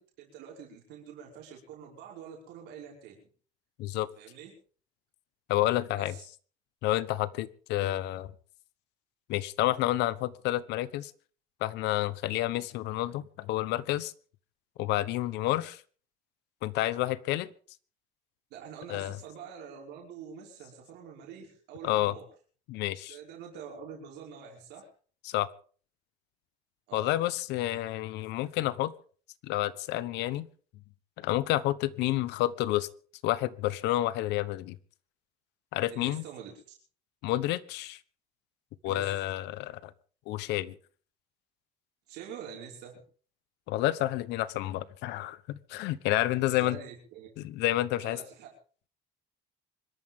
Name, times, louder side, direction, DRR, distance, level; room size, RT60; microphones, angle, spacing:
voice 1, 0.0-3.2 4.2-4.5 6.0-6.2 18.5-22.3 23.1-24.9 26.9-27.2 35.9-36.5 38.8-39.1 42.1-43.0 46.5-47.3 48.0-48.5, right 7 dB, 85° right, -1 dB, 5.3 m, -46 dB
voice 2, 5.5-6.1 6.8-8.3 9.3-11.1 11.6-14.1 14.8-15.8 16.6-17.5 18.9-19.2 21.8-22.1 22.7-23.2 25.2-25.5 26.9-28.9 29.4-30.5 31.2-32.9 33.2-34.8 35.7-36.2 37.2-38.0 38.8-39.9 40.3-40.7 43.7-46.8 47.4-48.2, left 15 dB, 85° left, 17 dB, 1.1 m, -29 dB
25.5 x 13.0 x 3.7 m, 0.42 s
cardioid pair, 140°, 17 cm